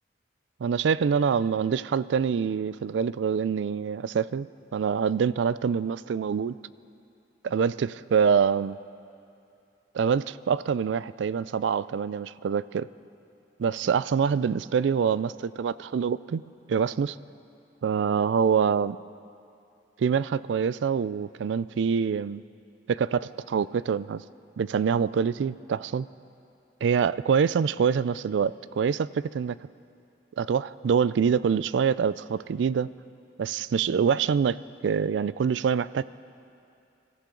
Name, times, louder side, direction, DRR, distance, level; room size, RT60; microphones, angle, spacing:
voice 1, 0.6-4.5 4.7-6.5 7.4-8.8 9.9-12.9 13.6-16.4 16.7-17.2 17.8-19.0 20.0-22.4 22.9-24.2 24.6-26.1 26.8-29.6 30.4-32.9 33.4-36.0, right 6 dB, 80° right, 18 dB, 0.3 m, -25 dB
25.0 x 14.5 x 3.8 m, 2.6 s
head